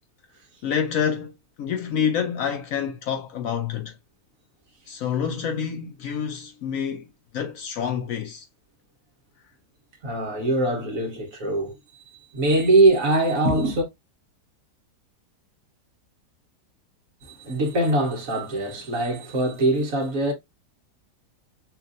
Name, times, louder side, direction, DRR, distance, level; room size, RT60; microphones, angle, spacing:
voice 1, 0.6-3.9 4.9-7.1 7.3-8.5, left 7 dB, 70° left, 0.9 m, -27 dB
voice 2, 10.0-13.8 17.2-20.3, right 2 dB, 60° right, 1.4 m, -22 dB
5.8 x 2.4 x 2.5 m
omnidirectional pair, 1.7 m